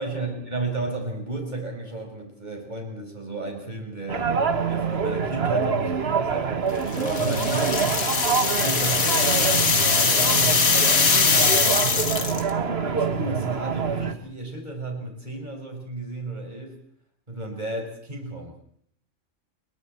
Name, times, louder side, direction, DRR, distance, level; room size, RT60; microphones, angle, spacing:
voice 1, 0.0-4.3 4.7-8.0 8.6-12.5 12.8-16.7 17.3-18.6, right 2 dB, 30° right, 2 dB, 5.7 m, -33 dB
sound 1, 4.1-14.1, right 5 dB, 50° right, 1.6 m, -26 dB
sound 2, 6.9-12.5, left 5 dB, 85° left, 2.2 m, -22 dB
28.5 x 23.5 x 4.5 m, 0.66 s
omnidirectional pair, 1.4 m